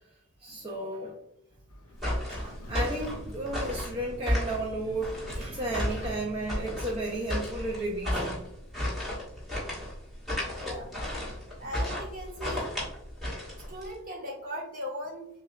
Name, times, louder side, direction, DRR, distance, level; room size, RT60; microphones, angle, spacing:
voice 1, 0.4-1.1 2.3-8.4 10.7-10.8 11.2-11.3, right 2 dB, 25° right, -2 dB, 0.4 m, -34 dB
Motorcycle, 1.7-11.8 12.1-12.2, left 1 dB, 70° left, 0.7 m, -50 dB
sound 1, 2.0-13.9, left 1 dB, ahead, 1.4 m, -33 dB
voice 2, 10.6-10.9 11.6-12.7 13.7-15.3, equal, 40° right, -1 dB, 1.1 m, -38 dB
6.5 x 2.2 x 2.3 m, 0.82 s
head